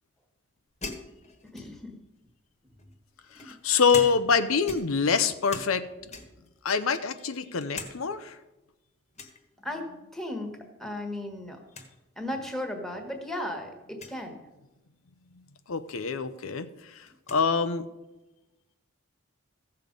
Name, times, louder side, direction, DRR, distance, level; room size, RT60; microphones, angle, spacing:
sound 1, 0.8-2.0 2.8-4.4 4.6-5.8 6.1-6.5 7.0-8.0 8.3-8.4 9.1-9.4 10.8-11.2 11.5-11.6 11.7-11.9 12.7-12.8 13.9-14.2 15.9-16.0 16.3-17.4, left 3 dB, 30° left, 1.3 m, -42 dB
voice 1, 1.5-1.9 6.0-6.3 9.6-10.5 10.8-11.6 12.2-14.4, left 1 dB, ahead, 4 dB, 1.4 m, -36 dB
voice 2, 3.3-5.9 6.6-8.4 15.7-17.9, left 5 dB, 80° left, 10 dB, 0.7 m, -26 dB
15.5 x 6.8 x 5.2 m, 1.0 s
head